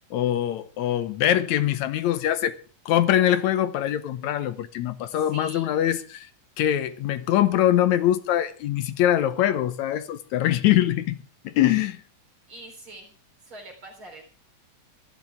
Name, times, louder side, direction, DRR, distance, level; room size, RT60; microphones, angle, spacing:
voice 1, 0.1-2.6 2.9-6.3 6.6-11.2 11.4-12.0, left 12 dB, 80° left, 2.1 m, -23 dB
voice 2, 5.1-5.8 12.5-13.2 13.4-14.2, right 2 dB, 45° right, 4.6 m, -44 dB
22.0 x 12.0 x 3.6 m
omnidirectional pair, 3.3 m